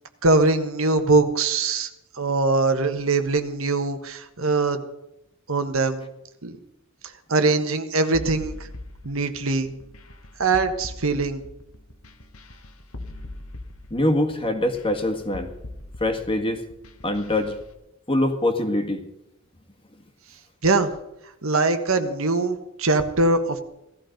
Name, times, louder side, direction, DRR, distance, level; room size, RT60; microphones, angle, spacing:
voice 1, 0.2-1.9 2.1-4.8 5.5-6.0 6.4-6.6 7.3-8.6 9.0-9.7 10.4-11.4 20.6-20.9 21.4-23.6, right 3 dB, 70° right, 7 dB, 1.5 m, -22 dB
sound 1, 8.1-17.7, left 1 dB, 90° left, 1.5 m, -41 dB
voice 2, 13.9-15.5 16.0-16.6 17.0-17.6 18.1-19.0, left 1 dB, 25° left, 6 dB, 1.8 m, -23 dB
17.5 x 14.0 x 5.2 m, 0.86 s
head